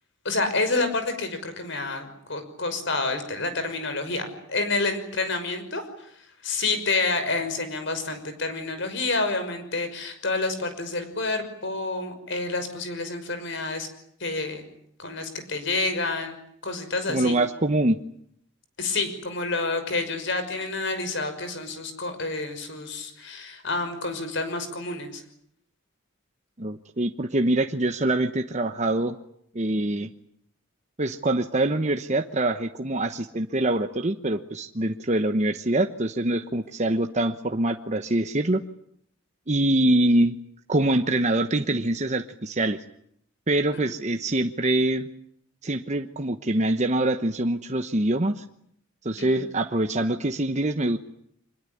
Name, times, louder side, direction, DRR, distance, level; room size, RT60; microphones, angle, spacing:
voice 1, 0.2-13.9 14.2-14.6 15.0-16.4 16.6-17.3 18.8-25.2 43.9-44.0 49.1-49.3, left 3 dB, 60° left, 9 dB, 5.9 m, -29 dB
voice 2, 17.1-18.0 26.6-29.2 29.5-30.1 31.0-38.6 39.5-40.3 40.7-42.8 43.5-45.1 45.6-48.4 49.0-51.0, right 1 dB, 35° right, 6 dB, 1.1 m, -24 dB
25.5 x 21.5 x 9.9 m, 0.70 s
head